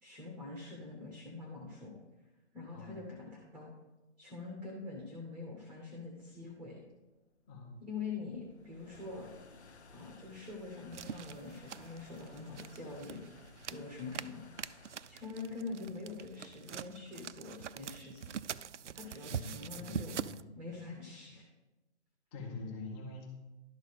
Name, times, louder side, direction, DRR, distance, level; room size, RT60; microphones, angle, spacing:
voice 1, 0.0-1.9 2.5-3.7 4.2-6.8 7.8-9.3 9.9-14.4 15.1-18.4 18.9-20.2 20.5-21.4, left 4 dB, 5° right, -1 dB, 1.0 m, -45 dB
voice 2, 2.7-3.1 7.5-7.9 19.3-20.5 22.3-23.3, left 3 dB, 25° left, -2 dB, 1.7 m, -45 dB
sound 1, 6.0-19.1, left 4 dB, 65° left, 1.0 m, -59 dB
sound 2, 10.9-20.4, right 8 dB, 80° right, 0.5 m, -44 dB
11.5 x 4.0 x 6.5 m, 1.1 s
figure-of-eight pair, 140°, 35 cm